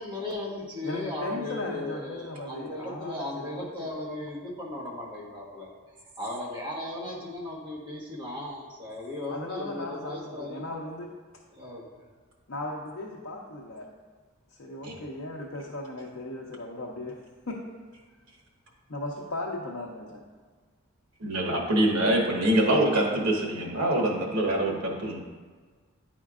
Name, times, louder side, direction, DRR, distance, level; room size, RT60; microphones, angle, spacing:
voice 1, 0.0-5.7 6.2-10.7 11.5-11.8 21.8-22.0, left 1 dB, 20° right, -6 dB, 1.1 m, -36 dB
voice 2, 0.8-3.9 9.3-11.1 12.5-13.9 14.6-17.2 17.5-17.6 18.9-20.2, left 2 dB, 65° left, -2 dB, 0.6 m, -37 dB
voice 3, 21.2-25.2, right 1 dB, 90° right, 0 dB, 1.2 m, -25 dB
9.7 x 4.4 x 2.4 m, 1.4 s
head